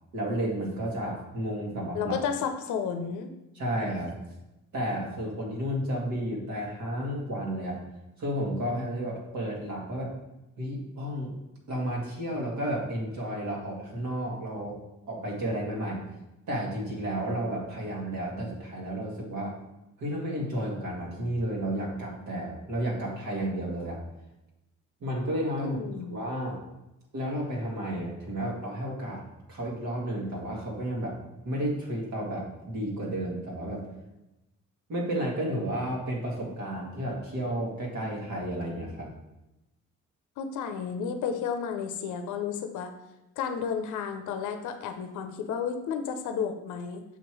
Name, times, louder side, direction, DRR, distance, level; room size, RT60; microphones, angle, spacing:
voice 1, 0.1-2.1 3.6-4.1 4.7-7.8 8.2-10.1 10.6-11.3 11.7-14.8 15.1-16.0 16.5-19.5 20.0-24.0 25.0-26.6 27.1-31.2 31.4-33.9 34.9-39.1, right 1 dB, 70° right, -2 dB, 1.8 m, -32 dB
voice 2, 1.9-3.3 25.6-26.2 40.4-42.9 43.4-47.0, left 7 dB, 80° left, 7 dB, 0.6 m, -32 dB
6.9 x 3.1 x 4.6 m, 0.94 s
cardioid pair, 90°, 30 cm